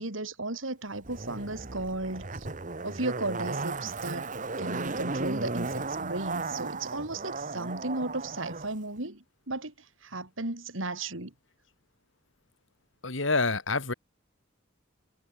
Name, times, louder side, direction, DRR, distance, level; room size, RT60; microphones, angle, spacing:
voice 1, 0.0-2.5 2.8-4.3 4.6-9.7 10.0-11.3, right 2 dB, 75° right, 3.8 m, -35 dB
Zipper (clothing), 1.0-8.7 9.0-9.1, right 3 dB, 40° right, 1.6 m, -35 dB
voice 2, 13.0-13.9, left 3 dB, 70° left, 3.0 m, -27 dB
head